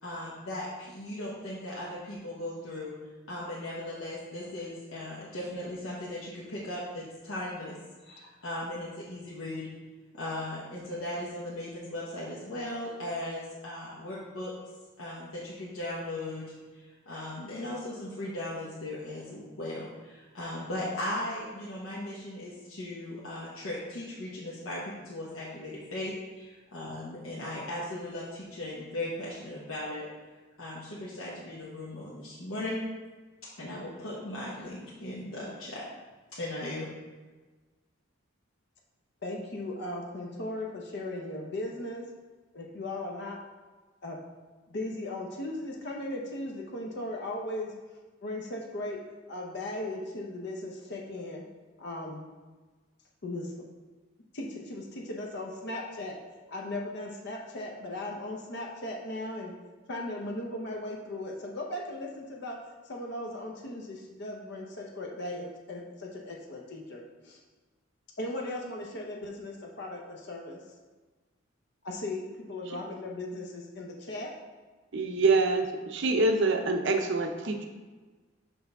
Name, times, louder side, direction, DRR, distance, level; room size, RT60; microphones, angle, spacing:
voice 1, 0.0-2.9 3.3-7.7 8.1-9.7 10.1-14.5 15.0-16.5 16.7-30.1 30.6-32.8 33.6-35.8 36.4-36.9, left 1 dB, 75° left, -7 dB, 1.1 m, -37 dB
voice 2, 39.2-42.0 42.5-43.4 44.0-44.2 44.7-47.7 48.2-49.0 49.3-51.5 51.8-52.3 53.2-53.5 54.3-56.2 56.5-59.5 59.9-62.6 62.9-67.4 68.2-70.6 71.8-74.3, left 1 dB, 55° left, -1 dB, 0.7 m, -37 dB
voice 3, 74.9-77.7, right 3 dB, 55° right, 4 dB, 0.6 m, -25 dB
6.0 x 5.4 x 3.5 m, 1.3 s
head